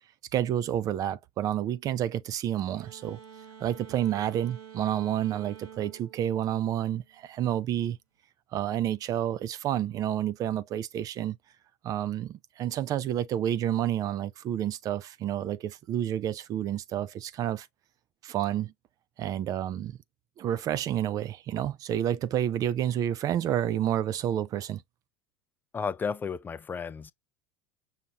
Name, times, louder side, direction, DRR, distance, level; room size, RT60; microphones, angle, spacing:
voice 1, 0.3-3.2 3.6-8.0 8.5-11.4 11.8-17.7 18.2-18.7 19.2-20.0 20.4-24.8, right 11 dB, 45° right, 0.4 m, -29 dB
sound 1, 2.7-7.2, right 9 dB, 80° right, 1.5 m, -48 dB
voice 2, 25.7-27.1, left 5 dB, 20° left, 0.4 m, -33 dB
5.7 x 2.5 x 3.0 m
supercardioid pair, 100°, 9 cm